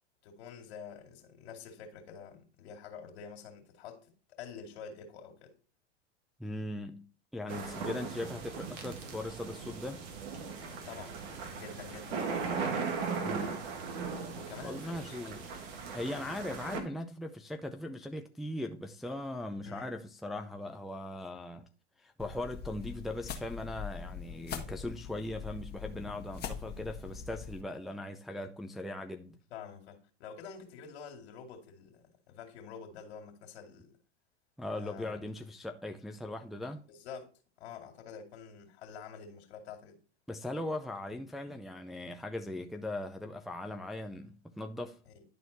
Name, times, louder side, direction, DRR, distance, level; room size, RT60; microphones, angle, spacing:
voice 1, 0.2-5.5 10.7-12.4 14.3-15.4 19.6-19.9 29.5-34.0 34.8-35.3 36.9-37.3 37.6-40.0 45.1-45.2, left 6 dB, 65° left, 2.5 m, -48 dB
voice 2, 6.4-10.0 13.2-13.7 14.6-15.4 15.9-21.7 22.0-29.4 34.6-36.8 40.3-45.0, left 1 dB, ahead, 0.5 m, -39 dB
large-storm-merged, 7.5-16.8, right 5 dB, 55° right, 1.9 m, -38 dB
sound 1, 22.2-27.6, left 7 dB, 30° left, 1.7 m, -42 dB
11.0 x 4.2 x 4.1 m
hypercardioid pair, 95°, 34 cm